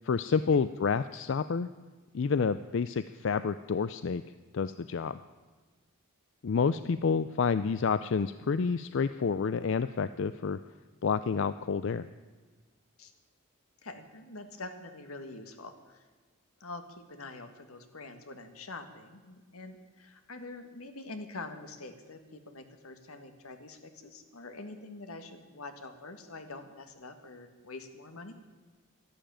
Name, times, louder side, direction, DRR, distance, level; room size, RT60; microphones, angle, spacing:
voice 1, 0.0-1.7 2.1-4.2 4.5-5.2 6.4-10.6 11.0-12.1, left 5 dB, 60° left, 13 dB, 0.4 m, -29 dB
voice 2, 13.8-16.1 16.6-16.8 17.1-28.3, left 3 dB, 85° left, 7 dB, 1.7 m, -45 dB
13.0 x 11.5 x 8.9 m, 1.3 s
head